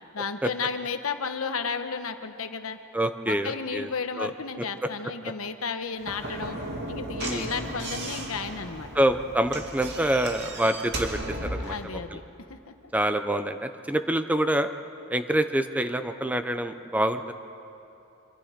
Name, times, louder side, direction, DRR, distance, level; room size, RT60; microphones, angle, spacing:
voice 1, 0.1-2.8 3.2-6.6 6.9-8.9 11.6-12.2 12.5-12.7, left 5 dB, 80° left, 8 dB, 1.2 m, -33 dB
voice 2, 2.9-3.9 4.2-4.3 5.2-5.3 7.2-7.5 8.9-12.2 12.9-14.7 15.1-17.3, right 1 dB, 5° right, 9 dB, 0.6 m, -26 dB
Slam / Knock, 6.0-11.8, right 1 dB, 50° right, 2.6 m, -35 dB
Singing, 6.1-10.9, equal, 25° left, 4.0 m, -47 dB
25.5 x 25.5 x 5.2 m, 2.8 s
head